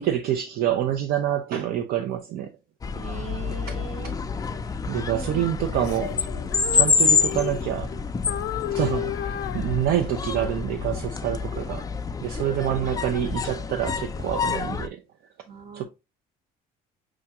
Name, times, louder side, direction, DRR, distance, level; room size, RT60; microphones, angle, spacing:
voice 1, 0.0-2.5 4.9-6.2 6.7-7.9 8.7-11.8 12.2-15.0 15.7-15.9, right 11 dB, 65° right, 0.5 m, -27 dB
sound 1, 2.8-14.9, left 5 dB, 20° left, 0.4 m, -27 dB
voice 2, 2.9-4.2 4.9-5.6 6.7-6.9 8.6-8.8 12.7-13.1 15.4-15.9, right 5 dB, 45° right, 0.9 m, -41 dB
Female singing, 5.7-7.9 8.3-10.3, left 13 dB, 80° left, 0.5 m, -33 dB
6.1 x 2.3 x 2.8 m
cardioid pair, 110°, 17 cm